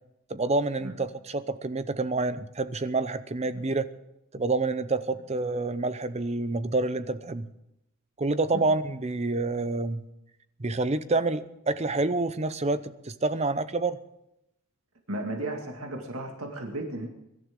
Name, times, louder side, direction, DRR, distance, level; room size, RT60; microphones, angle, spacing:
voice 1, 0.3-3.8 4.3-7.5 8.2-10.0 10.6-14.0, right 3 dB, 30° right, 13 dB, 0.7 m, -28 dB
voice 2, 15.1-17.1, right 1 dB, 70° right, 2 dB, 2.1 m, -34 dB
23.5 x 12.0 x 3.8 m, 0.84 s
head